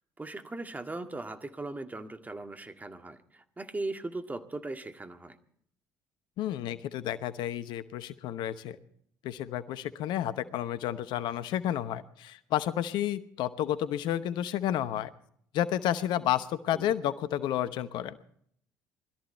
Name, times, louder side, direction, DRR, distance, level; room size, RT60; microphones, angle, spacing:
voice 1, 0.2-5.4 16.7-16.9, right 2 dB, 20° right, 7 dB, 1.9 m, -39 dB
voice 2, 6.4-8.8 9.2-15.1 15.5-18.2, left 11 dB, 65° left, 14 dB, 0.9 m, -31 dB
21.0 x 13.5 x 4.4 m, 0.65 s
hypercardioid pair, 55°, 8 cm